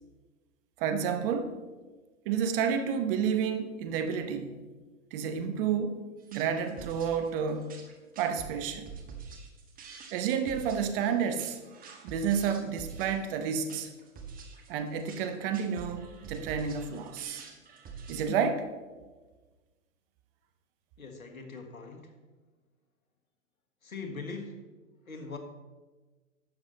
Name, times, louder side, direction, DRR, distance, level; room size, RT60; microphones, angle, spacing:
voice 1, 0.8-1.5 2.2-4.6 5.1-6.0 6.3-7.8 8.2-8.9 10.1-11.6 12.0-13.9 14.7-17.5 18.1-18.7, right 7 dB, 45° right, 8 dB, 1.2 m, -30 dB
sound 1, 6.2-18.2, right 5 dB, 20° right, 1.5 m, -46 dB
voice 2, 21.0-22.1 23.8-24.6 25.1-25.4, left 4 dB, 90° left, 5 dB, 1.6 m, -41 dB
11.5 x 7.8 x 4.0 m, 1.3 s
hypercardioid pair, 110°, 40 cm